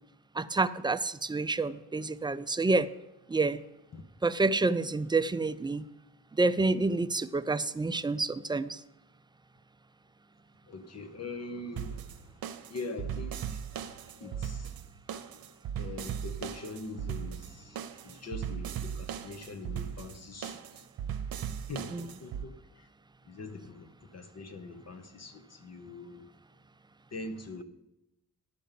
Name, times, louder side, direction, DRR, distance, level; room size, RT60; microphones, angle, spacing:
voice 1, 0.3-2.9 3.3-3.6 4.2-5.9 6.4-8.8 14.2-14.3 21.9-22.1, right 3 dB, 15° right, 0.3 m, -28 dB
voice 2, 10.7-12.3 12.7-13.6 14.2-14.7 15.8-17.8 18.0-20.6 21.7-22.5 23.3-26.3 27.1-27.6, left 2 dB, 45° left, 1.1 m, -43 dB
sound 1, 11.8-22.4, right 8 dB, 85° right, 0.8 m, -38 dB
11.0 x 5.3 x 7.4 m
cardioid pair, 110°, 35 cm